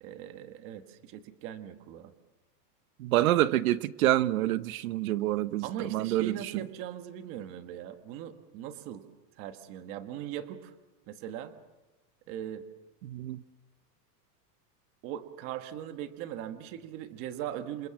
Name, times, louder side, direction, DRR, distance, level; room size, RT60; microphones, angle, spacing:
voice 1, 0.0-2.1 5.6-9.1 9.4-10.7 11.1-11.5 12.3-12.7 15.0-17.9, right 10 dB, 25° right, 1.3 m, -40 dB
voice 2, 3.0-6.6 13.0-13.4, right 14 dB, 60° right, 1.0 m, -27 dB
27.5 x 27.5 x 7.5 m
supercardioid pair, 180°, 49 cm